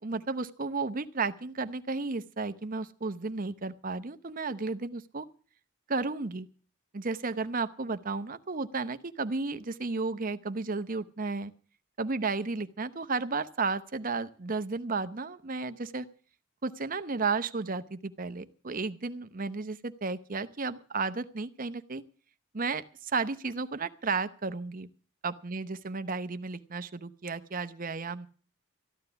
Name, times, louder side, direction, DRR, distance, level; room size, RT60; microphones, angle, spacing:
voice 1, 0.0-5.3 5.9-6.5 6.9-11.5 12.0-16.1 16.6-22.0 22.5-24.9 25.2-28.3, right 4 dB, 40° right, 12 dB, 0.8 m, -33 dB
14.0 x 12.0 x 6.9 m, 0.40 s
head